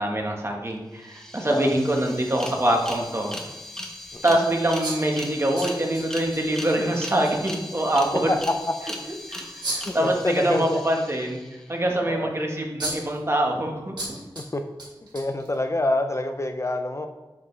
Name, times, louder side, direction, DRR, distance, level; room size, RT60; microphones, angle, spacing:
voice 1, 0.0-3.3 4.2-8.3 9.3-11.4 11.7-14.2, right 1 dB, 30° right, 1 dB, 1.4 m, -24 dB
sound 1, 0.7-0.8 1.0-11.8, left 1 dB, 5° left, 1.1 m, -39 dB
sound 2, 4.8-6.4 6.7-6.8 7.2-7.3 9.6-10.0 12.3-12.4 12.8-13.2 14.0-14.5 14.8-15.8, right 1 dB, 60° right, 2.5 m, -33 dB
voice 2, 9.8-10.8 12.1-12.3 14.4-14.6 15.1-17.1, left 1 dB, 35° left, 7 dB, 0.5 m, -26 dB
7.3 x 7.2 x 3.3 m, 1.1 s
wide cardioid pair, 75°, 9 cm